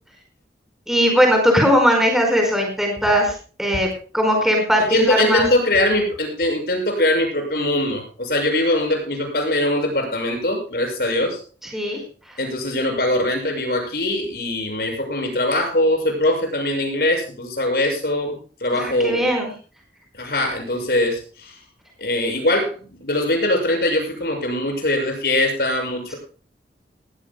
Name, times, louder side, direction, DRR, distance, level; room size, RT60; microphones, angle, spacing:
voice 1, 0.9-3.9 4.1-5.4 11.7-12.0 18.7-19.5, equal, ahead, 2 dB, 4.7 m, -19 dB
voice 2, 4.8-11.4 12.4-19.2 20.1-21.6 22.0-26.2, left 1 dB, 60° left, 2 dB, 6.9 m, -22 dB
19.5 x 15.5 x 2.2 m, 0.40 s
head